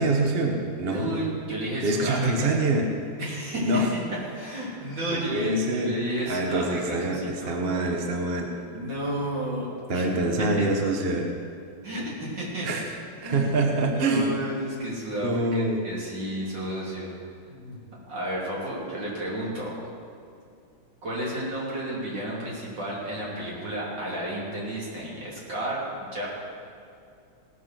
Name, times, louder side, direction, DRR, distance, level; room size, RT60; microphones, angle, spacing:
voice 1, 0.0-1.2 1.8-2.9 3.6-3.9 5.1-5.9 6.3-8.5 9.9-11.3 12.6-12.9 13.2-14.3 15.2-15.8, right 2 dB, 40° right, 2 dB, 0.9 m, -25 dB
voice 2, 0.8-2.5 3.2-3.8 4.3-7.6 8.7-10.1 10.6-10.7 11.8-12.7 13.2-13.5 13.8-17.1 17.5-17.8 18.1-19.7 21.0-26.3, right 1 dB, 55° right, -6 dB, 3.7 m, -32 dB
17.0 x 7.1 x 6.0 m, 2.5 s
omnidirectional pair, 2.4 m